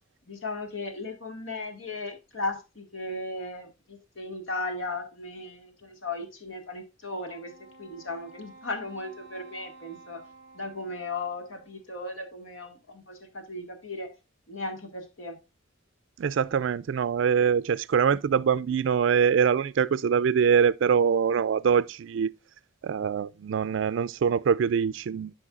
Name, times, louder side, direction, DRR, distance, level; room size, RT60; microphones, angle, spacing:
voice 1, 0.3-7.5 7.8-10.2 10.5-14.1 14.5-15.4, left 2 dB, 80° left, 1.9 m, -36 dB
Wind instrument woodwind instrument, 7.2-11.8, right 3 dB, 50° left, 3.6 m, -52 dB
voice 2, 16.2-22.3 22.8-25.3, right 7 dB, 65° right, 0.3 m, -24 dB
12.5 x 5.1 x 2.4 m
head